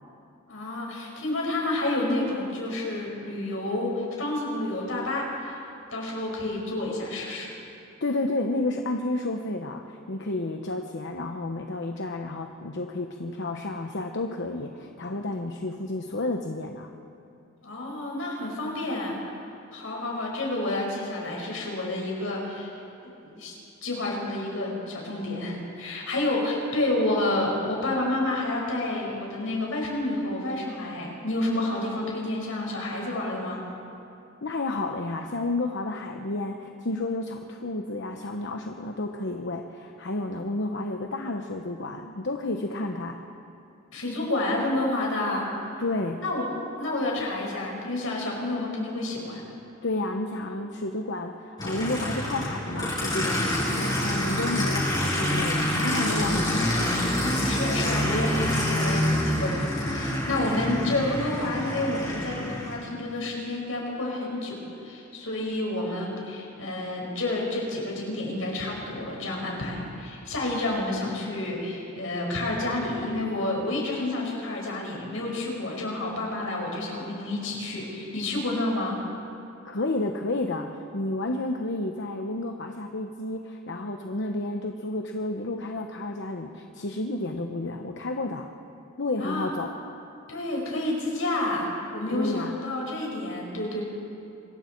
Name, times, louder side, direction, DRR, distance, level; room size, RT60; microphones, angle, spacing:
voice 1, 0.5-5.6 5.9-7.5 17.6-19.2 19.7-22.7 23.0-23.6 23.8-33.6 43.9-45.4 46.2-49.4 57.4-59.6 59.9-79.0 89.2-89.5 90.3-93.8, left 2 dB, 80° left, -2 dB, 5.7 m, -29 dB
voice 2, 8.0-16.9 34.4-43.2 45.8-46.2 49.8-56.9 79.6-88.5 89.0-89.7 92.1-92.6, left 2 dB, 60° left, 4 dB, 1.0 m, -31 dB
Aircraft, 51.6-62.7, left 1 dB, 20° left, 6.9 m, -27 dB
26.0 x 22.0 x 4.6 m, 2.7 s
head